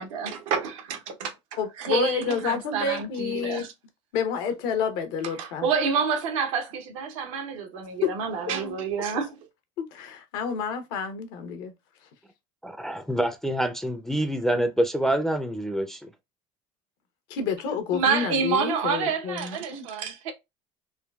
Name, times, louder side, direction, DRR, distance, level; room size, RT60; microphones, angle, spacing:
voice 1, 0.0-1.3 1.8-3.7 5.4-9.4 17.9-20.3, right 6 dB, 85° right, 0.8 m, -28 dB
voice 2, 1.6-3.7 4.1-5.7 8.0-8.1 9.8-11.7 17.3-19.9, left 6 dB, 75° left, 0.8 m, -29 dB
voice 3, 12.6-16.0, right 1 dB, 5° left, 0.4 m, -26 dB
3.6 x 2.3 x 2.2 m
supercardioid pair, 90°, 17 cm